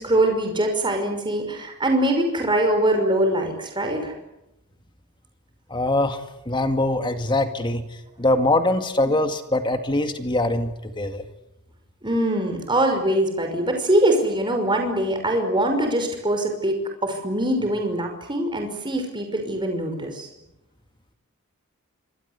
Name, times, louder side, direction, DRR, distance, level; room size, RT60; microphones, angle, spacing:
voice 1, 0.0-4.1 9.1-9.2 12.0-20.3, right 1 dB, 20° right, 4 dB, 5.7 m, -23 dB
voice 2, 5.7-7.8 8.2-11.2, left 2 dB, 20° left, 7 dB, 2.0 m, -23 dB
27.0 x 25.5 x 8.3 m, 0.88 s
head